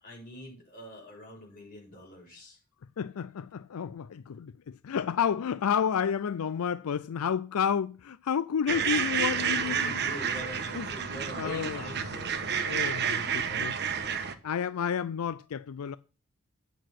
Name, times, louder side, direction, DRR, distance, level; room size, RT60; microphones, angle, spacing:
voice 1, 0.0-2.6 9.3-13.7, left 1 dB, 40° left, 7.4 m, -45 dB
voice 2, 3.0-10.0 10.7-10.9 11.3-12.2 12.6-13.8 14.4-16.0, left 7 dB, 90° left, 0.4 m, -31 dB
sound 1, 8.7-14.3, right 7 dB, 50° right, 1.2 m, -30 dB
9.2 x 6.9 x 5.9 m
head